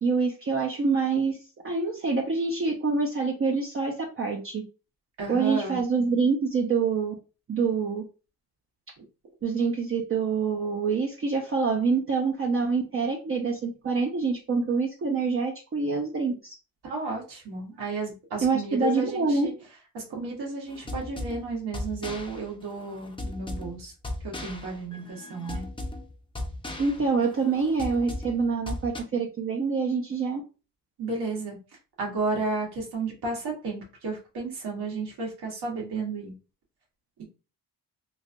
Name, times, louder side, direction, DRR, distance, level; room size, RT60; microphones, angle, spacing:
voice 1, 0.0-4.7 5.3-7.1 7.5-8.0 9.4-16.5 18.4-19.5 26.8-30.4, right 4 dB, 35° right, 0 dB, 0.6 m, -26 dB
voice 2, 5.2-5.8 16.8-19.5 19.9-23.9 24.2-25.7 31.0-31.6 32.0-36.3, right 3 dB, 70° right, -1 dB, 1.5 m, -33 dB
sound 1, 20.7-29.0, left 1 dB, 15° left, 0.6 m, -37 dB
3.2 x 2.5 x 2.5 m, 0.33 s
cardioid pair, 75°, 40 cm